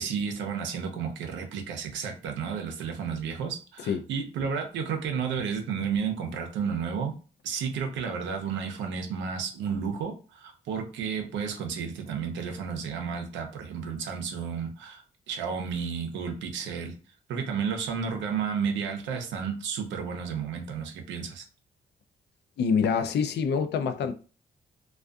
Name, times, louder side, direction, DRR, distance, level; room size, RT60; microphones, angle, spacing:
voice 1, 0.0-7.2 7.4-15.0 15.3-16.9 17.3-21.4, right 6 dB, 90° right, 0.6 m, -32 dB
voice 2, 22.6-24.1, left 6 dB, 65° left, 0.4 m, -26 dB
2.5 x 2.3 x 2.3 m
cardioid pair, 70°, 19 cm